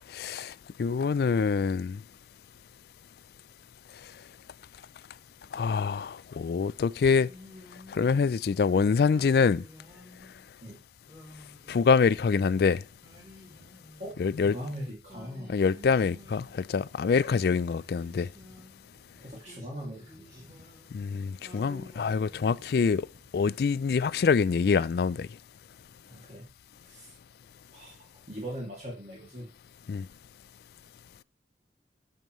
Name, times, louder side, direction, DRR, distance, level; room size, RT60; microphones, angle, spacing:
voice 1, 0.1-0.5 0.8-2.0 5.5-7.3 7.9-9.6 11.7-12.8 14.2-14.5 15.5-18.3 20.9-23.1 23.3-25.3 29.9-30.1, left 5 dB, 60° left, 0.3 m, -25 dB
Singing, 7.0-8.5 9.1-10.4 11.0-12.4 13.0-14.5 15.1-16.9 17.3-18.9 19.4-21.0 21.4-23.0, left 1 dB, 20° right, 3.7 m, -52 dB
sound 1, 12.9-24.5 25.0-25.1, equal, 85° right, 2.8 m, -61 dB
voice 2, 14.4-15.5 19.2-20.6 26.1-26.5 26.8-27.1 27.7-29.5, equal, 40° right, 2.4 m, -40 dB
9.1 x 6.8 x 3.1 m
head